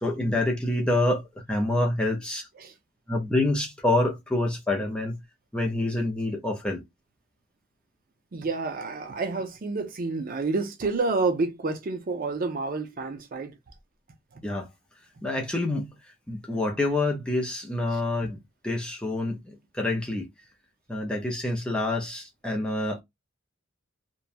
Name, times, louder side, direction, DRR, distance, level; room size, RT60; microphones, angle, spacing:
voice 1, 0.0-2.5 3.1-5.2 5.5-6.8 14.4-14.7 15.2-15.9 16.3-20.3 20.9-23.0, left 2 dB, 5° left, 0.6 m, -27 dB
voice 2, 8.3-13.6 14.3-14.4, right 3 dB, 40° right, 0.4 m, -29 dB
2.8 x 2.2 x 2.4 m
head